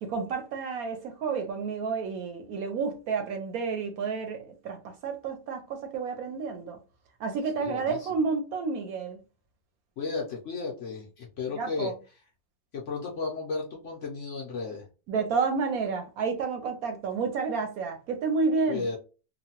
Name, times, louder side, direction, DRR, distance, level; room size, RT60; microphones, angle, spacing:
voice 1, 0.0-4.8 5.0-6.8 7.2-9.2 11.6-11.9 15.1-18.8, right 4 dB, 70° right, 0.9 m, -30 dB
voice 2, 7.6-8.1 10.0-11.9 12.7-14.9 18.7-19.0, left 4 dB, 60° left, 0.9 m, -34 dB
3.0 x 2.2 x 2.8 m
omnidirectional pair, 1.8 m